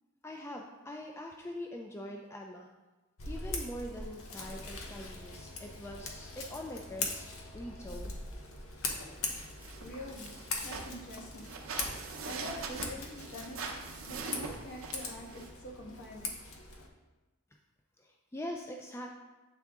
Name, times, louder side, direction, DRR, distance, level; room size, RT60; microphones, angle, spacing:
voice 1, 0.2-2.7 3.3-8.1 18.0-19.1, left 1 dB, 15° left, 1 dB, 0.3 m, -43 dB
Scissors, 3.2-16.9, left 3 dB, 80° left, 0.8 m, -41 dB
sound 1, 9.3-15.5, right 4 dB, 75° right, 0.7 m, -43 dB
voice 2, 9.8-10.3 10.6-11.5 12.2-13.6 14.0-16.3, equal, 60° left, -2 dB, 1.3 m, -45 dB
8.0 x 3.6 x 3.6 m, 1.1 s
head